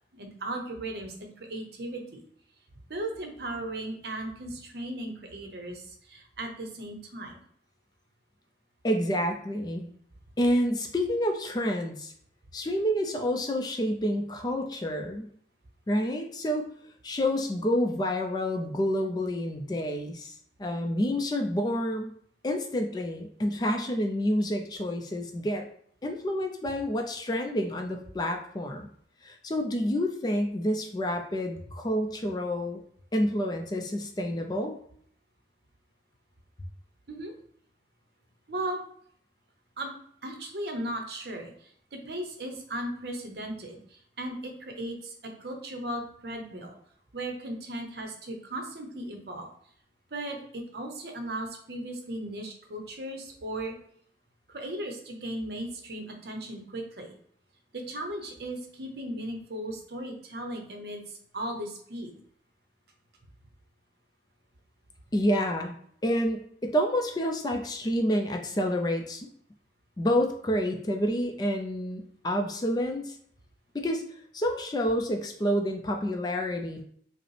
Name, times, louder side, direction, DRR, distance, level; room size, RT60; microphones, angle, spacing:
voice 1, 0.1-2.2 2.9-7.4 37.1-37.3 38.5-38.8 39.8-39.9 40.2-46.8 47.1-49.5 50.1-53.7 54.5-57.1 57.7-62.2, right 1 dB, 65° right, 3 dB, 0.7 m, -37 dB
voice 2, 8.8-9.9 10.4-12.1 12.5-15.3 15.9-16.7 17.0-22.1 22.4-25.7 26.0-28.9 29.2-32.8 33.1-34.8 65.1-65.7 66.0-69.3 70.0-73.2 73.7-74.0 74.3-76.8, equal, 25° left, 4 dB, 0.3 m, -28 dB
4.9 x 2.0 x 3.2 m, 0.63 s
head